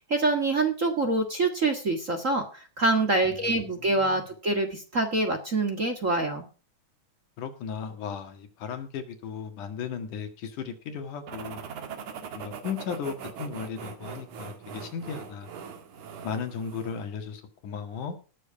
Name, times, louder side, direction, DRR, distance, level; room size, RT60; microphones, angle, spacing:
voice 1, 0.1-6.5, right 2 dB, 30° right, 5 dB, 1.7 m, -25 dB
voice 2, 3.7-4.2 7.4-11.6 12.3-15.5 16.2-18.2, left 6 dB, 85° left, 7 dB, 3.3 m, -36 dB
sound 1, 11.3-17.1, right 6 dB, 80° right, 3.1 m, -41 dB
19.0 x 7.0 x 4.7 m, 0.36 s
omnidirectional pair, 3.5 m